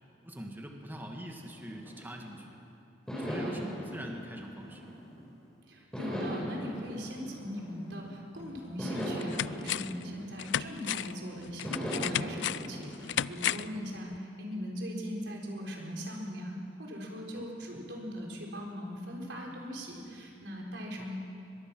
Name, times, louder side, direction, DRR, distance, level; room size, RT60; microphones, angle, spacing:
voice 1, 0.2-2.6 3.1-5.0 17.3-17.4 21.0-21.1, equal, 10° right, 2 dB, 1.6 m, -43 dB
sound 1, 1.3-2.5 3.1-5.3 5.9-8.2 8.8-11.0 11.6-13.8, equal, 5° left, 5.6 m, -39 dB
voice 2, 5.7-21.2, equal, 85° right, -1 dB, 4.4 m, -40 dB
sound 2, 8.4-8.5 8.9-10.0 10.4-13.8 14.1-14.2, left 11 dB, 85° left, 0.4 m, -34 dB
23.5 x 21.5 x 6.1 m, 2.6 s
head